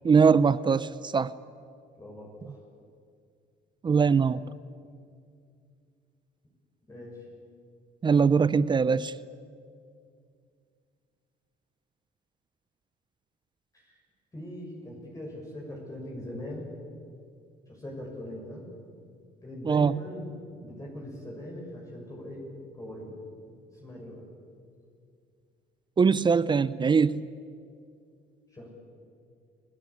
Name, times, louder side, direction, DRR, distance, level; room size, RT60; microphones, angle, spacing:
voice 1, 0.0-1.3 3.8-4.4 8.0-9.1 19.7-20.0 26.0-27.2, right 5 dB, 25° right, 0.6 m, -22 dB
voice 2, 2.0-2.6 3.9-4.1 6.9-7.2 13.7-14.0 14.3-16.7 17.7-18.7 19.4-20.3 20.6-22.4 22.7-23.1 23.7-24.3 28.5-28.7, left 1 dB, 20° left, 6.9 m, -41 dB
29.5 x 18.5 x 8.6 m
cardioid pair, 110°, 17 cm